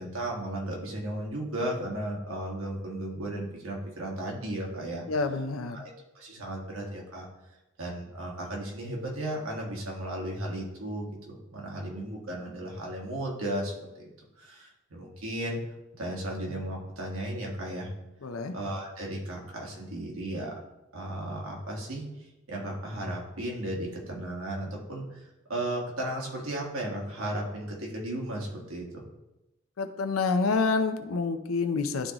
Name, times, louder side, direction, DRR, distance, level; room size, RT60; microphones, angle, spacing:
voice 1, 0.0-5.0 5.7-7.3 7.8-14.1 14.4-15.6 16.0-17.9 18.5-20.6 20.9-29.1, right 1 dB, 85° right, -1 dB, 1.6 m, -35 dB
voice 2, 5.1-5.9 18.2-18.5 29.8-32.1, left 4 dB, 85° left, 8 dB, 0.6 m, -28 dB
11.0 x 3.8 x 3.0 m, 0.97 s
head